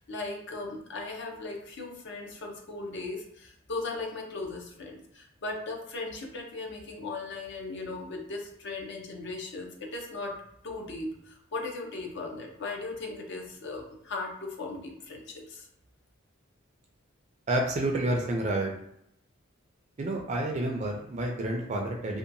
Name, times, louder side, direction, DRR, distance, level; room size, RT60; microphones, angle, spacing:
voice 1, 0.0-10.4 10.6-15.7, left 3 dB, 60° left, 1 dB, 0.6 m, -38 dB
voice 2, 17.5-18.7 20.0-22.2, right 1 dB, 35° right, 1 dB, 0.4 m, -29 dB
2.7 x 2.2 x 2.5 m, 0.75 s
head